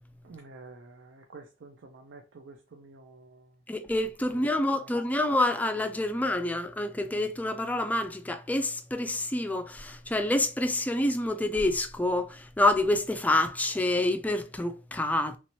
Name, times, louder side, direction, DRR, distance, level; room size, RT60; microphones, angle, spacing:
voice 1, 0.2-3.5 4.3-4.5 4.7-5.0, right 3 dB, 70° right, 0.5 m, -49 dB
voice 2, 3.7-15.4, left 1 dB, 10° left, 0.3 m, -27 dB
3.0 x 2.8 x 2.9 m
head